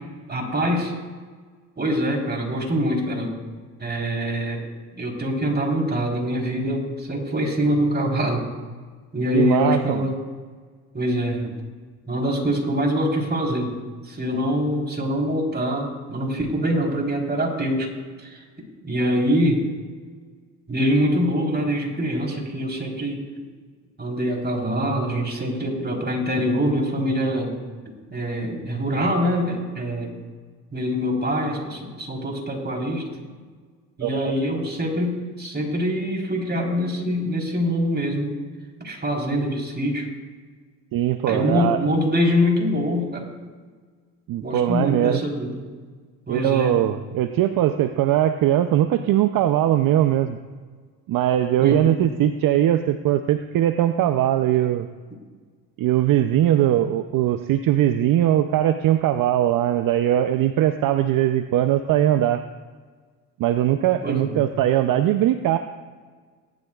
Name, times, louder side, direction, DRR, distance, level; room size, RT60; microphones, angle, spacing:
voice 1, 0.3-0.9 1.8-3.3 3.8-4.6 4.9-8.4 9.1-10.2 10.9-11.6 12.1-13.7 14.0-18.4 18.8-19.6 20.7-23.2 24.0-27.5 28.1-30.2 30.7-33.1 34.0-38.4 38.8-40.1 41.2-43.3 44.4-45.6 46.3-46.8 51.6-52.0 64.0-64.4, equal, 25° right, 0 dB, 4.0 m, -24 dB
voice 2, 9.3-10.1 34.0-34.3 40.9-41.8 44.3-45.2 46.3-50.4 51.1-54.9 55.8-62.4 63.4-65.6, right 12 dB, 60° right, 9 dB, 0.7 m, -20 dB
18.5 x 11.5 x 2.4 m, 1.5 s
supercardioid pair, 70°, 38 cm